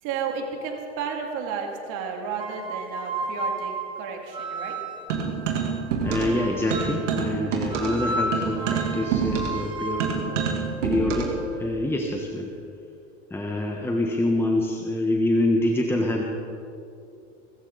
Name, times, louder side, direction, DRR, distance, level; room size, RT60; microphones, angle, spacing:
voice 1, 0.0-4.8, right 6 dB, 55° right, 2 dB, 2.8 m, -32 dB
sound 1, 2.3-5.2 6.1-7.1 7.7-11.7, right 2 dB, 15° right, 2.1 m, -33 dB
sound 2, 5.1-6.4 6.7-11.4, right 6 dB, 85° right, 2.9 m, -27 dB
voice 2, 6.0-10.3 10.8-11.3 11.6-12.5 13.3-16.2, left 1 dB, 5° left, 1 dB, 1.3 m, -25 dB
22.5 x 13.5 x 4.1 m, 2.6 s
supercardioid pair, 110°, 36 cm